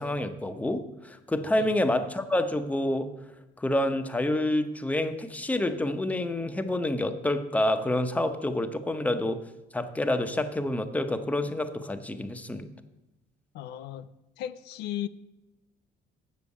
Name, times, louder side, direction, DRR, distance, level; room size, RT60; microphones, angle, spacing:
voice 1, 0.0-3.1 3.6-9.4 9.7-12.7, left 1 dB, 10° left, 0.8 m, -28 dB
voice 2, 13.5-14.1 14.4-15.1, left 12 dB, 85° left, 0.5 m, -36 dB
7.5 x 7.2 x 8.2 m
cardioid pair, 110°, 17 cm